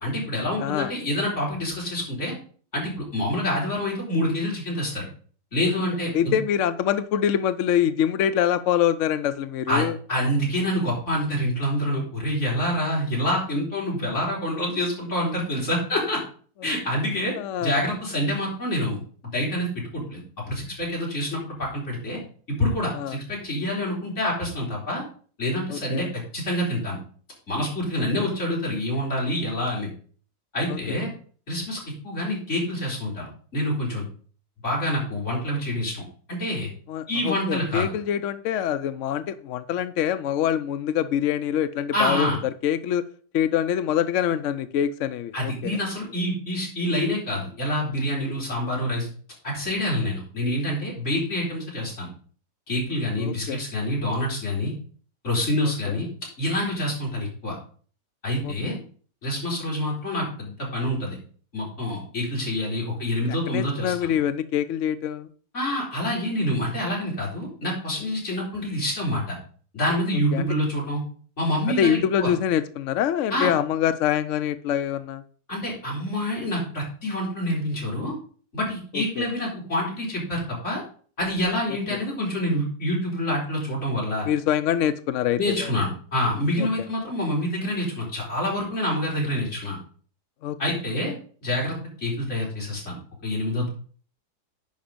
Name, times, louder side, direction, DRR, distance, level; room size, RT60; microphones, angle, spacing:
voice 1, 0.0-2.3 2.7-5.1 5.5-6.4 9.7-16.2 16.6-17.3 17.6-19.0 19.3-22.2 22.5-25.0 25.4-27.0 27.5-29.9 30.5-31.1 31.5-31.8 32.0-34.0 34.6-36.0 36.3-36.7 37.1-37.9 41.9-42.4 45.3-49.1 49.4-52.1 52.7-54.7 55.2-56.1 56.4-57.6 58.2-58.8 59.2-61.2 61.5-64.1 65.5-69.4 69.7-71.0 71.4-72.3 73.3-73.5 75.5-78.1 78.5-80.8 81.2-84.3 85.4-89.8 90.6-91.1 91.4-93.0 93.2-93.7, left 1 dB, 40° left, -4 dB, 4.4 m, -27 dB
voice 2, 0.6-0.9 6.1-10.0 16.6-16.7 17.4-17.7 22.9-23.2 25.7-26.1 30.7-31.0 36.9-43.0 43.3-45.8 53.2-53.6 55.8-56.0 58.4-58.8 63.3-65.3 70.3-70.5 71.7-75.2 78.9-79.2 84.2-85.7 86.6-86.7 90.4-90.6, left 10 dB, 75° left, 12 dB, 0.7 m, -25 dB
10.5 x 5.1 x 5.1 m, 0.43 s
omnidirectional pair, 1.9 m